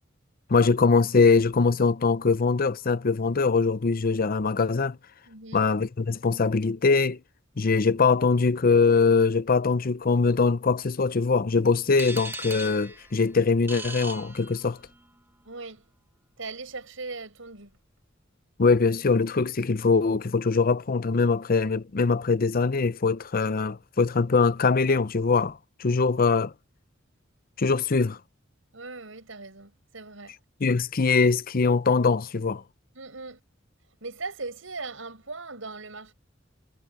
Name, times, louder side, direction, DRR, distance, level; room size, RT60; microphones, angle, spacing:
voice 1, 0.5-5.0 5.5-7.2 7.6-14.8 18.6-26.5 27.6-28.2 30.6-32.6, left 4 dB, 45° left, 0.6 m, -22 dB
voice 2, 5.3-5.7 15.5-15.8 16.4-17.7 25.9-26.0 28.7-30.4 32.9-33.4 34.0-36.1, right 3 dB, 85° right, 5.6 m, -39 dB
sound 1, 12.0-15.0, right 2 dB, 10° right, 1.3 m, -39 dB
head